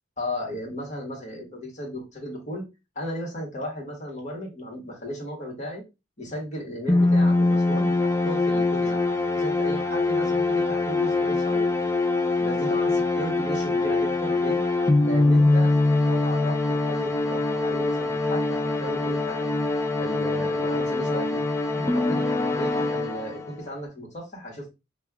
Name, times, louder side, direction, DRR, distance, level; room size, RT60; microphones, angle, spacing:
voice 1, 0.2-2.6 2.9-5.8 6.2-11.7 12.4-14.6 15.0-15.7 16.0-19.6 20.0-21.4 21.7-22.3 22.6-24.7, equal, 40° left, 0 dB, 1.4 m, -35 dB
sound 1, 6.9-23.6, left 2 dB, 15° left, 0.4 m, -23 dB
5.3 x 2.3 x 2.3 m, 0.25 s
head